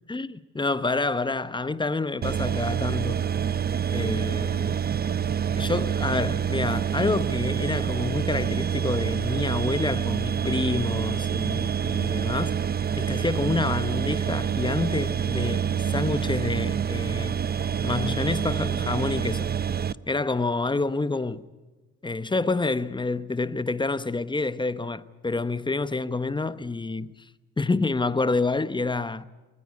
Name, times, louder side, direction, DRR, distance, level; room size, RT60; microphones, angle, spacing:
voice 1, 0.1-3.2 3.9-4.8 5.5-12.6 13.0-17.4 17.8-19.5 20.1-21.4 22.0-27.3 27.6-29.2, left 3 dB, 15° left, 0.9 m, -28 dB
sound 1, 2.2-19.9, right 8 dB, 30° right, 0.6 m, -27 dB
21.5 x 19.5 x 8.4 m
cardioid pair, 90°, 30 cm